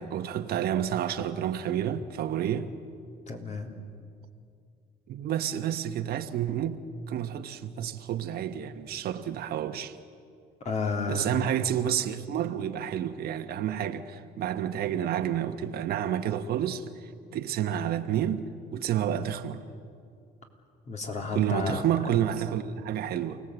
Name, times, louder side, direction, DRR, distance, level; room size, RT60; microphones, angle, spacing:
voice 1, 0.0-2.7 5.1-6.8 7.1-10.0 11.1-16.8 17.3-19.6 21.3-23.4, right 10 dB, 65° right, 1.3 m, -29 dB
voice 2, 3.3-3.7 10.6-11.3 20.9-22.2, left 4 dB, 45° left, 3.5 m, -32 dB
28.5 x 18.0 x 8.1 m
cardioid pair, 110°, 17 cm